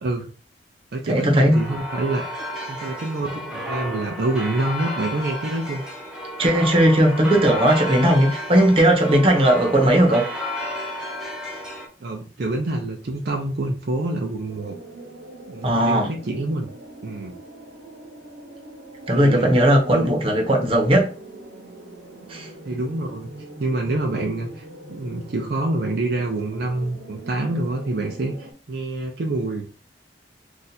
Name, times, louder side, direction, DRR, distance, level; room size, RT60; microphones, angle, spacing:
voice 1, 0.0-0.3 0.9-2.3 2.7-5.8 12.0-14.8 15.5-16.7 17.0-17.4 19.1-19.5 19.9-20.1 22.6-23.3 23.6-29.7, right 2 dB, 60° right, 0.5 m, -26 dB
voice 2, 1.1-1.6 6.4-10.3 15.6-16.1 19.1-21.1 22.3-22.5, right 1 dB, 30° right, 0.9 m, -17 dB
sound 1, 1.5-11.9, equal, 5° right, 0.8 m, -32 dB
sound 2, 14.5-28.5, right 1 dB, 85° right, 1.1 m, -42 dB
2.7 x 2.4 x 4.0 m
head